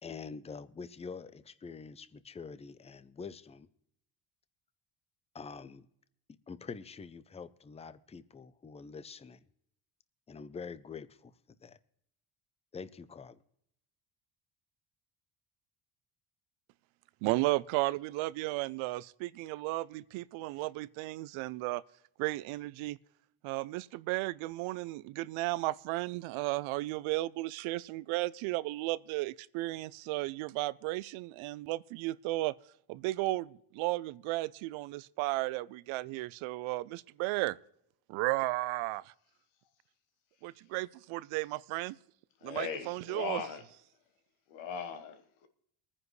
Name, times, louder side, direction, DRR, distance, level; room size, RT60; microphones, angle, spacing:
voice 1, 0.0-3.7 5.3-5.9 6.5-9.4 10.3-11.3 11.6-11.8 12.7-13.4, left 5 dB, 15° left, 0.5 m, -45 dB
voice 2, 17.2-21.8 22.2-23.0 23.4-32.5 32.9-37.6 38.1-39.1 40.4-42.0 42.4-43.4, right 19 dB, 85° right, 0.6 m, -34 dB
voice 3, 42.4-43.6 44.5-45.5, left 6 dB, 85° left, 1.4 m, -39 dB
23.5 x 9.9 x 3.2 m
cardioid pair, 115°, 47 cm